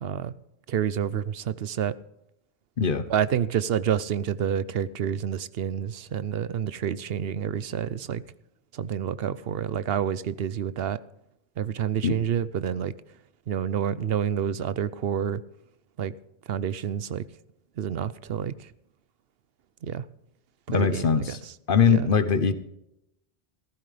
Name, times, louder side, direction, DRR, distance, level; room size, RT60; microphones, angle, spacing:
voice 1, 0.0-0.3 0.7-1.9 3.1-8.2 8.7-11.0 11.6-12.9 13.5-15.4 16.0-16.1 16.5-17.2 17.8-18.7 19.8-20.1 20.7-21.5 21.9-22.1, right 9 dB, 75° right, 0.8 m, -28 dB
voice 2, 20.7-21.4 21.7-22.5, left 6 dB, 55° left, 1.1 m, -21 dB
16.0 x 14.0 x 3.3 m
omnidirectional pair, 1.1 m